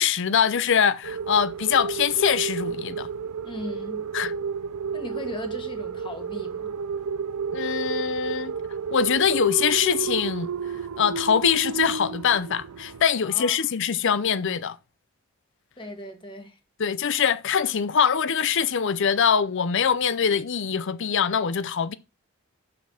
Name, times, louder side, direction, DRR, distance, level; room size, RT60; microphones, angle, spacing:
voice 1, 0.0-3.1 4.1-4.3 7.5-8.5 8.9-10.5 11.0-14.8 16.8-21.9, left 7 dB, 55° left, 0.5 m, -23 dB
sound 1, 1.0-13.0, right 6 dB, 80° right, 0.5 m, -31 dB
voice 2, 3.4-4.1 4.9-6.7 13.2-13.6 15.8-16.6, left 1 dB, 20° left, 1.5 m, -38 dB
6.2 x 5.8 x 6.4 m
head